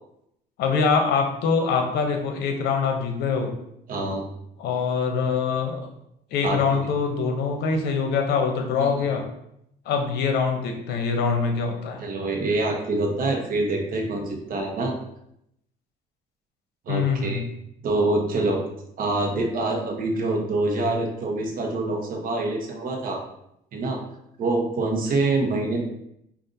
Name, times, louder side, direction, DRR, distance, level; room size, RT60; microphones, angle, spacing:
voice 1, 0.6-3.5 4.6-5.9 6.3-9.2 9.9-12.0 16.9-17.4, left 5 dB, 75° left, 4 dB, 0.7 m, -24 dB
voice 2, 3.9-4.2 6.4-6.8 8.8-9.1 12.0-14.9 16.9-17.4 17.8-18.6 19.0-23.2 23.7-24.0 24.4-25.8, right 2 dB, 55° right, 1 dB, 0.9 m, -25 dB
4.9 x 2.5 x 2.7 m, 0.77 s
cardioid pair, 110°, 17 cm